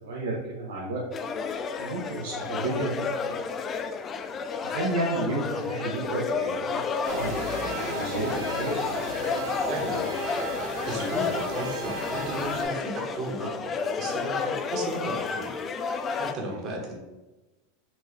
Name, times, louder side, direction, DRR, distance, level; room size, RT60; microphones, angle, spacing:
voice 1, 0.0-1.0 1.8-3.5 4.6-8.7, right 2 dB, 85° right, -4 dB, 0.9 m, -32 dB
sound 1, 1.1-16.3, left 5 dB, 30° left, 0.3 m, -31 dB
sound 2, 7.1-12.6, right 2 dB, 65° right, 1.1 m, -34 dB
voice 2, 9.7-10.0 10.6-17.0, right 1 dB, 45° right, 0 dB, 1.2 m, -35 dB
4.4 x 3.0 x 3.2 m, 1.1 s
supercardioid pair, 115°, 0 cm